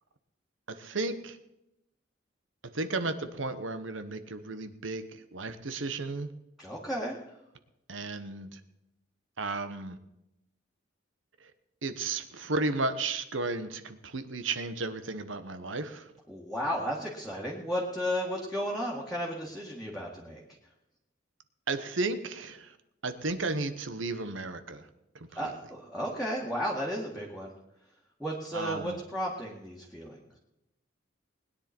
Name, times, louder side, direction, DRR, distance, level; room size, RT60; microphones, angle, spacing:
voice 1, 0.7-1.4 2.7-6.3 7.9-8.6 9.4-10.0 11.4-11.5 11.8-16.1 21.7-22.7 23.0-24.9 25.1-25.5 28.5-29.0, right 3 dB, 85° right, 10 dB, 1.2 m, -34 dB
voice 2, 6.6-7.2 16.3-20.4 25.4-27.5 28.2-30.2, equal, ahead, -5 dB, 2.1 m, -34 dB
20.5 x 10.0 x 4.5 m, 0.88 s
head